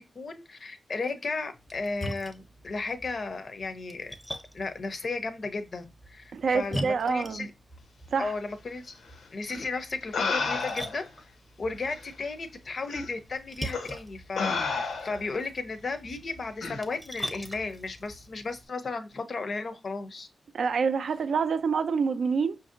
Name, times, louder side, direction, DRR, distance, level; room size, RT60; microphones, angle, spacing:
voice 1, 0.0-4.1 4.5-7.5 8.2-9.0 9.3-11.1 11.6-20.3, left 3 dB, 45° left, 0.5 m, -34 dB
Splash splatter, 1.5-18.6, equal, 5° left, 0.6 m, -43 dB
voice 2, 6.3-7.5 8.1-8.3 20.5-22.6, right 5 dB, 70° right, 0.4 m, -27 dB
sound 1, 9.5-9.6 10.1-11.1 12.0-12.1 12.9-13.1 13.7-13.9 14.4-15.3 16.6-16.8, left 4 dB, 85° left, 0.7 m, -31 dB
5.6 x 2.6 x 2.5 m
wide cardioid pair, 140°, 0 cm